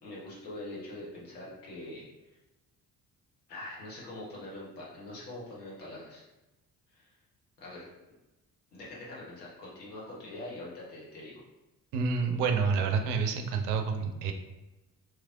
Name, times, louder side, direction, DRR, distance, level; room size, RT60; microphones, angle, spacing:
voice 1, 0.0-2.4 3.5-6.2 6.9-7.1 7.6-7.9 8.7-11.4, left 1 dB, 80° left, -6 dB, 1.1 m, -43 dB
voice 2, 11.9-14.3, right 5 dB, 60° right, 5 dB, 0.6 m, -28 dB
3.3 x 3.1 x 3.7 m, 1.0 s
figure-of-eight pair, 40°, 48 cm